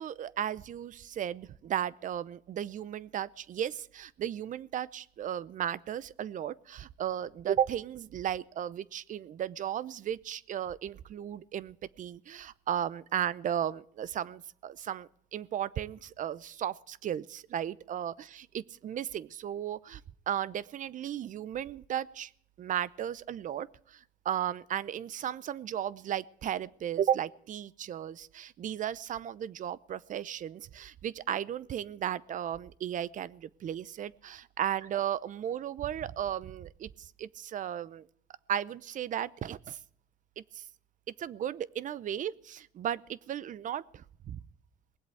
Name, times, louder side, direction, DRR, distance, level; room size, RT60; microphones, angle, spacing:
voice 1, 0.0-20.0 20.3-22.3 22.6-24.0 24.2-38.1 38.5-39.8 40.4-40.6 41.2-44.4, right 10 dB, 50° right, 20 dB, 0.7 m, -35 dB
20.0 x 8.0 x 8.5 m, 0.66 s
cardioid pair, 110°, 17 cm